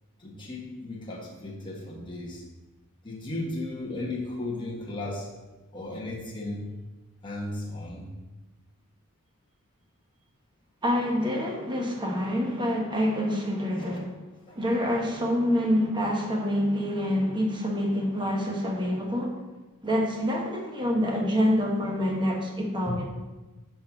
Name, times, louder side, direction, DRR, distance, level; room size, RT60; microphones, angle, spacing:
voice 1, 0.2-2.4 3.0-5.3 5.7-6.7 7.2-8.1 13.8-14.0 14.4-14.6 22.9-23.0, left 2 dB, 20° left, -4 dB, 1.3 m, -35 dB
voice 2, 10.8-14.2 14.5-19.3 19.8-23.1, equal, 20° right, 0 dB, 1.2 m, -26 dB
5.8 x 4.3 x 5.9 m, 1.2 s
head